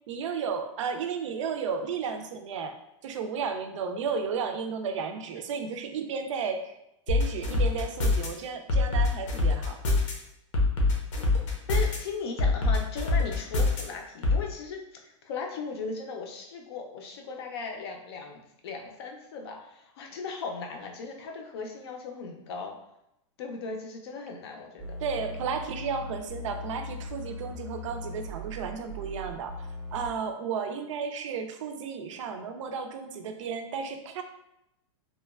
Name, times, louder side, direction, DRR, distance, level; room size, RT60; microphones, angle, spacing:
voice 1, 0.1-2.8 3.0-6.8 7.1-9.8 25.0-34.2, right 6 dB, 80° right, 6 dB, 0.4 m, -33 dB
sound 1, 7.1-8.3 8.7-10.1 10.5-12.0 12.4-13.8 14.2-14.4, left 2 dB, 80° left, 0.8 m, -24 dB
voice 2, 11.7-22.8 23.4-24.9, left 4 dB, 55° left, 2 dB, 0.5 m, -37 dB
sound 2, 24.8-30.1, left 1 dB, 15° right, 0.7 m, -39 dB
2.9 x 2.2 x 2.2 m, 0.83 s
supercardioid pair, 170°, 16 cm